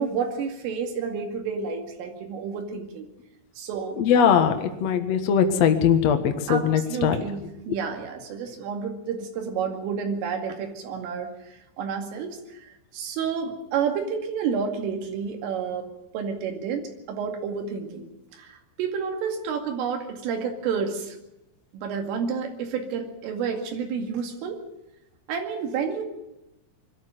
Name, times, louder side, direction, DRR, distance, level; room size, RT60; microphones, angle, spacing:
voice 1, 0.0-3.1 3.6-4.0 6.5-11.3 11.8-12.6 12.9-15.9 16.1-21.2 21.7-24.6 25.3-26.0, right 6 dB, 90° right, 4 dB, 4.9 m, -30 dB
voice 2, 4.0-4.5 4.8-7.2, left 8 dB, 75° left, 6 dB, 1.5 m, -20 dB
21.5 x 13.0 x 9.4 m, 0.89 s
omnidirectional pair, 5.6 m